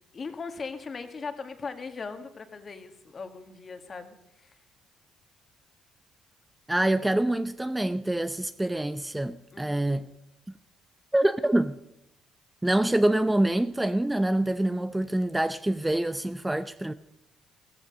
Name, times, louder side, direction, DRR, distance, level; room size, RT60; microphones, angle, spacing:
voice 1, 0.1-4.6 9.5-10.0, left 4 dB, 40° left, 1.9 m, -39 dB
voice 2, 6.7-10.1 11.1-11.8 12.6-16.9, right 1 dB, 10° right, 0.6 m, -26 dB
15.0 x 14.5 x 5.4 m
supercardioid pair, 70°, 0 cm